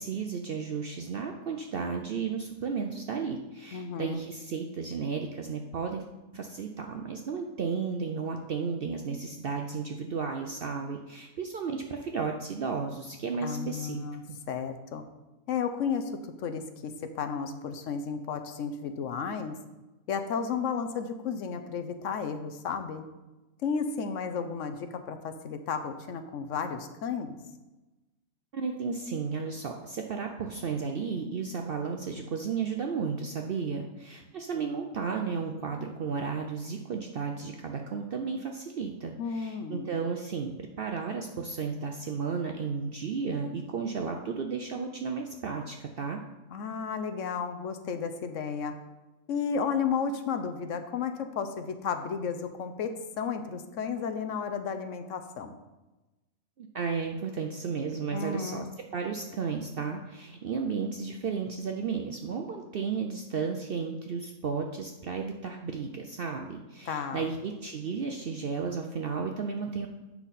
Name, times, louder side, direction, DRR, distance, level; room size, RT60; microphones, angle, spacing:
voice 1, 0.0-6.0 6.3-14.0 28.5-46.2 56.6-58.7 58.9-69.9, right 5 dB, 60° right, 3 dB, 0.6 m, -33 dB
voice 2, 3.7-4.2 13.4-14.2 14.5-15.0 15.5-16.1 16.4-19.5 20.1-23.0 23.6-27.3 39.2-39.9 46.5-48.7 49.3-55.5 58.1-58.7 66.9-67.3, left 6 dB, 65° left, 8 dB, 0.9 m, -33 dB
8.3 x 5.8 x 4.1 m, 1.1 s
omnidirectional pair, 1.5 m